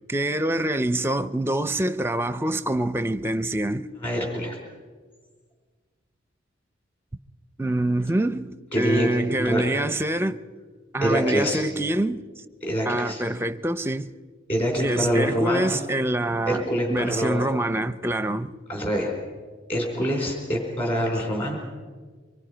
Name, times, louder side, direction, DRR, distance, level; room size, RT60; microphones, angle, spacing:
voice 1, 0.1-3.9 7.6-10.4 10.9-12.2 12.9-14.1 14.8-16.6 16.9-18.5, right 1 dB, 10° right, 0.6 m, -25 dB
voice 2, 4.0-4.6 8.7-9.1 9.4-9.7 11.0-11.6 12.6-13.2 14.5-15.8 16.5-17.5 18.7-19.1 19.7-21.6, equal, 30° left, 4.6 m, -25 dB
25.0 x 23.5 x 5.1 m
head